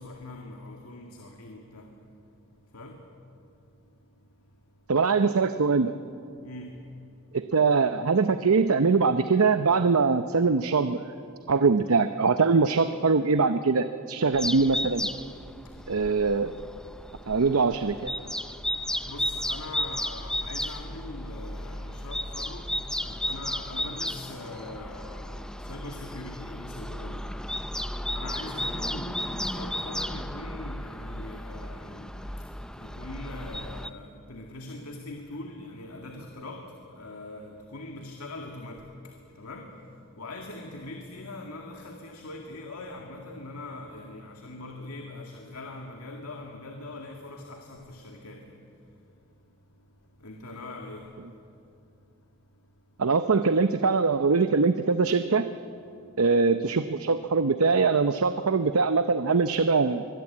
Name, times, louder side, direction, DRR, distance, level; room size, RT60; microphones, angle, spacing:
voice 1, 0.0-3.3 3.6-4.5 6.4-7.4 11.4-11.5 15.5-16.1 18.5-52.9 55.9-56.2, left 2 dB, 80° left, 2.1 m, -43 dB
voice 2, 4.9-5.9 7.3-11.1 11.5-15.1 15.9-16.5 17.3-18.1 53.0-55.4 56.2-60.1, right 4 dB, 75° right, 0.7 m, -23 dB
sound 1, 14.3-33.9, left 1 dB, 5° left, 0.5 m, -34 dB
24.0 x 21.0 x 8.6 m
head